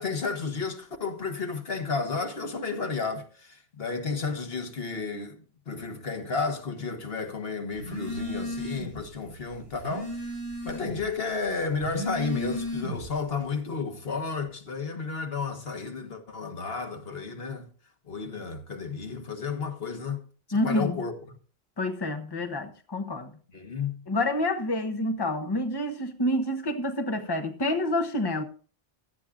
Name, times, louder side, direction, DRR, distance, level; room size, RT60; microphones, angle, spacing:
voice 1, 0.0-10.3 10.6-17.7 18.1-20.2 20.5-21.2 23.5-24.0, left 4 dB, 70° left, 1.6 m, -32 dB
Telephone, 7.8-9.0 9.4-11.1 11.7-13.2, left 1 dB, 75° right, 6.3 m, -34 dB
voice 2, 20.5-21.0 21.8-23.3 24.1-28.4, left 1 dB, 25° left, 1.1 m, -28 dB
16.5 x 12.5 x 2.5 m
omnidirectional pair, 1.0 m